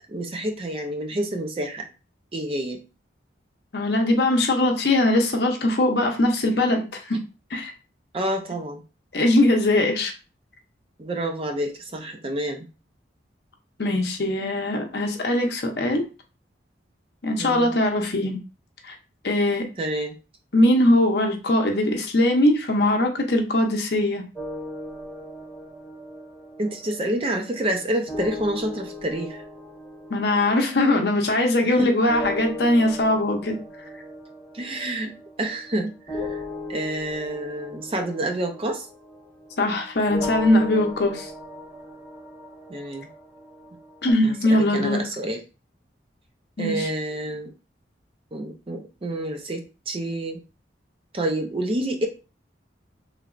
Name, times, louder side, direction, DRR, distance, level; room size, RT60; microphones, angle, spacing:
voice 1, 0.1-1.8 2.3-2.9 8.1-8.8 11.0-12.7 17.4-17.7 19.8-20.2 26.6-29.4 31.6-31.9 34.5-35.1 35.4-36.4 36.7-38.9 42.7-43.1 44.2-45.4 46.6-47.5 48.3-50.4 51.1-52.1, right 1 dB, 30° right, 4 dB, 0.5 m, -28 dB
voice 2, 3.7-7.2 7.5-7.7 9.1-10.1 13.8-16.0 17.2-18.4 18.9-19.0 19.2-19.7 20.5-24.2 30.1-33.6 39.6-41.3 44.0-45.0 46.6-46.9, left 1 dB, 60° left, 4 dB, 0.6 m, -21 dB
sound 1, 24.4-31.7 32.1-39.7 40.1-44.1, left 1 dB, 10° left, 1.4 m, -37 dB
3.2 x 2.9 x 2.5 m, 0.32 s
head